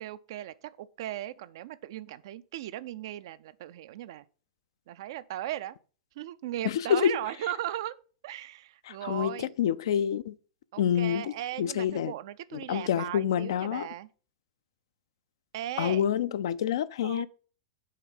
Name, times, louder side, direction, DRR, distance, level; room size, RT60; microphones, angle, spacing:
voice 1, 0.0-4.2 4.9-5.8 6.2-8.0 8.2-9.5 10.7-14.1 15.5-16.0 17.0-17.3, right 13 dB, 55° right, 0.4 m, -37 dB
voice 2, 6.6-7.2 8.8-10.4 10.8-12.1 12.5-13.9 15.8-17.3, left 9 dB, 60° left, 0.4 m, -27 dB
6.6 x 3.9 x 5.9 m
figure-of-eight pair, 100°, 3 cm